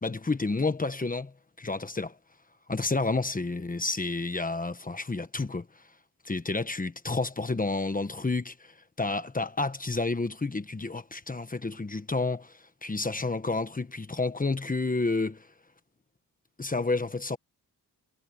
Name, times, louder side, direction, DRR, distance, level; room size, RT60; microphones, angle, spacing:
voice 1, 0.0-2.1 2.7-5.7 6.2-15.5 16.6-17.4, left 3 dB, 20° left, 1.1 m, -30 dB
wide cardioid pair, 150°, 39 cm